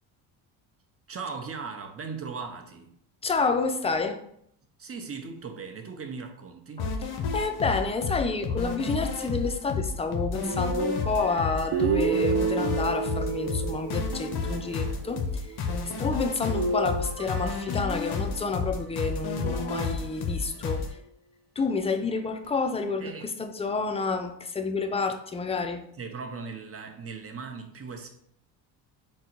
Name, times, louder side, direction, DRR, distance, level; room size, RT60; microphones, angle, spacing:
voice 1, 1.1-2.9 4.8-6.9 15.8-16.0 23.0-23.3 26.0-28.2, right 5 dB, 30° right, 4 dB, 0.7 m, -38 dB
voice 2, 3.2-4.2 7.3-15.6 15.8-21.0 21.6-25.8, left 4 dB, 15° left, 6 dB, 0.4 m, -29 dB
sound 1, 6.8-20.9, left 4 dB, 50° left, 0.8 m, -31 dB
sound 2, 10.4-12.7 13.4-14.4 16.4-18.5 19.4-20.3 20.9-21.0 22.4-22.5, right 1 dB, 50° right, 1.2 m, -36 dB
Guitar, 11.7-15.7, right 6 dB, 85° right, 0.7 m, -29 dB
3.8 x 2.2 x 4.5 m, 0.69 s
supercardioid pair, 80°, 48 cm